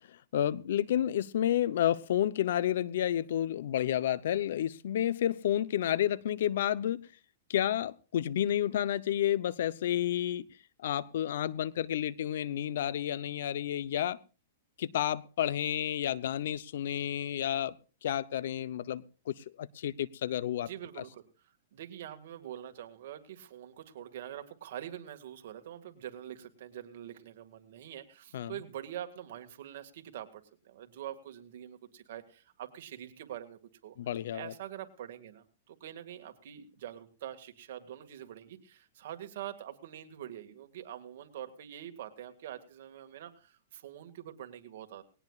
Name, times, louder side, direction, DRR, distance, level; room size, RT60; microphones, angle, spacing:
voice 1, 0.1-7.0 7.5-10.5 10.8-14.2 14.8-17.7 18.0-20.7 28.3-28.5 34.0-34.5, left 11 dB, 70° left, 0.7 m, -30 dB
voice 2, 20.6-34.0 34.3-45.0, right 11 dB, 60° right, 1.9 m, -45 dB
19.5 x 18.0 x 2.4 m
hypercardioid pair, 140°, 0 cm